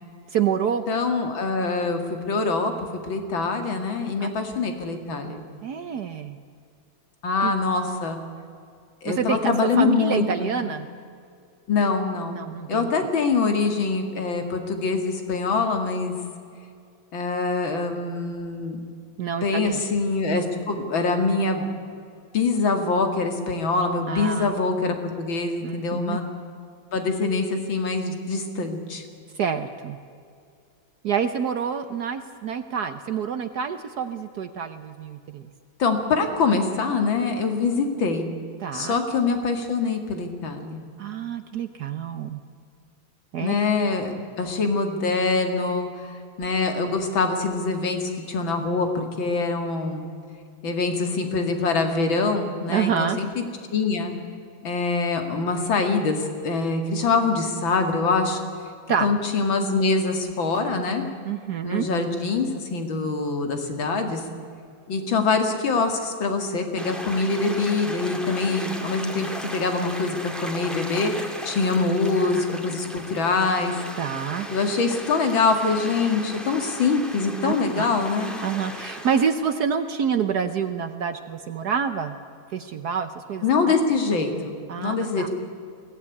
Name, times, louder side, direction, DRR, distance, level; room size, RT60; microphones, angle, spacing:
voice 1, 0.3-0.8 4.2-4.3 5.6-6.4 7.4-7.5 9.0-10.9 12.3-12.9 19.2-19.8 24.1-24.5 25.6-26.2 29.3-30.0 31.0-35.4 38.6-39.0 41.0-42.4 43.3-43.5 52.7-53.2 58.9-59.1 61.2-61.9 74.0-74.5 77.4-77.9 78.4-82.2 82.5-83.4 84.7-85.3, right 7 dB, 60° right, 9 dB, 1.3 m, -27 dB
voice 2, 0.9-2.7 3.1-5.4 7.2-8.2 9.0-10.7 11.7-12.4 12.7-16.1 17.1-18.8 19.4-21.7 22.3-26.3 26.9-29.0 35.8-38.3 38.7-40.8 43.4-45.9 46.4-50.1 50.6-53.4 53.7-54.1 54.6-58.4 59.0-61.1 61.6-64.2 64.9-71.1 71.4-73.7 74.5-78.3 83.4-85.3, left 4 dB, 75° left, 5 dB, 3.0 m, -24 dB
sound 1, 66.8-79.3, equal, ahead, 1.9 m, -36 dB
22.0 x 17.5 x 9.7 m, 2.4 s
omnidirectional pair, 2.1 m